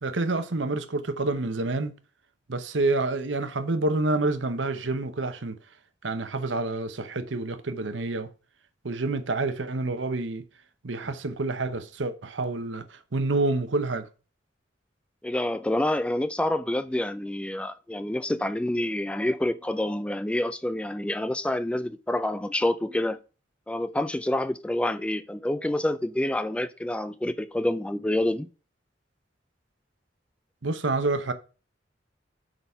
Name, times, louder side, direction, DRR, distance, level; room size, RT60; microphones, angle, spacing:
voice 1, 0.0-1.9 2.5-5.6 6.0-8.3 8.8-10.4 10.8-14.1 30.6-31.3, right 2 dB, 90° right, 0.9 m, -28 dB
voice 2, 15.2-23.2 23.7-28.5, left 1 dB, 5° left, 0.3 m, -27 dB
7.6 x 4.1 x 5.6 m
head